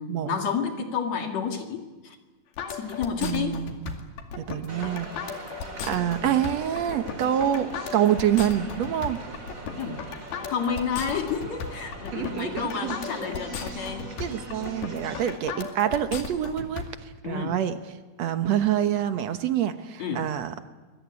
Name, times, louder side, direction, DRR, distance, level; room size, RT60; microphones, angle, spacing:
voice 1, 0.0-2.2 2.7-3.6 9.8-10.0 10.5-14.1 17.2-17.6 20.0-20.2, left 6 dB, 50° left, 4 dB, 2.8 m, -30 dB
sound 1, 2.6-16.8, left 6 dB, 75° left, 4.2 m, -36 dB
voice 2, 3.2-5.4 5.8-9.2 12.1-12.9 14.2-17.8 18.2-20.5, right 10 dB, 70° right, 9 dB, 1.6 m, -27 dB
sound 2, 4.7-15.4, right 2 dB, 25° right, 2.8 m, -41 dB
26.5 x 21.5 x 9.6 m, 1.3 s
omnidirectional pair, 4.5 m